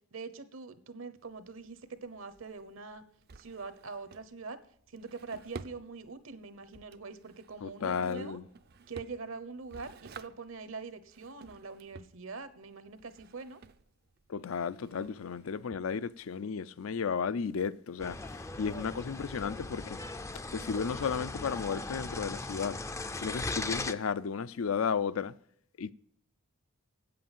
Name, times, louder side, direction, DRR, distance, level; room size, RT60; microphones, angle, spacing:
voice 1, 0.1-3.0 3.4-4.6 4.9-8.4 8.9-13.6, right 4 dB, 70° right, 1.0 m, -44 dB
Drawer open or close, 1.2-16.3, right 4 dB, 50° right, 0.5 m, -53 dB
voice 2, 7.6-8.4 14.3-20.0 20.5-22.8 23.2-25.3 25.8-25.9, left 6 dB, 75° left, 0.5 m, -34 dB
sound 1, 18.0-23.9, left 3 dB, 15° left, 0.4 m, -38 dB
8.5 x 7.8 x 7.2 m
head